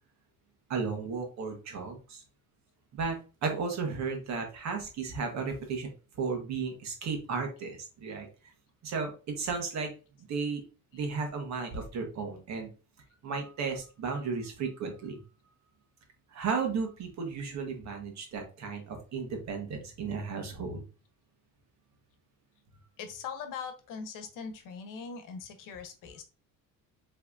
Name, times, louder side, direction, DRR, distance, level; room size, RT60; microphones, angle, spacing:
voice 1, 0.7-2.2 2.9-5.9 6.2-8.3 8.8-9.9 10.3-10.6 10.9-12.7 13.2-15.2 16.3-20.8, right 5 dB, 55° right, 3 dB, 1.4 m, -34 dB
voice 2, 23.0-26.2, left 6 dB, 70° left, 8 dB, 1.0 m, -41 dB
5.6 x 3.3 x 2.6 m, 0.34 s
cardioid pair, 140°, 33 cm